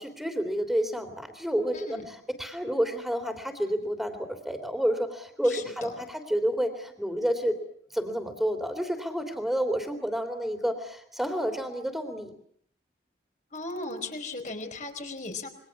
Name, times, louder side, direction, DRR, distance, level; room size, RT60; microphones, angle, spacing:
voice 1, 0.0-7.6 7.9-12.3, equal, ahead, 6 dB, 3.4 m, -29 dB
voice 2, 1.7-2.1 5.4-5.9 13.5-15.5, left 3 dB, 45° left, 5 dB, 4.7 m, -37 dB
28.0 x 23.0 x 7.3 m, 0.68 s
head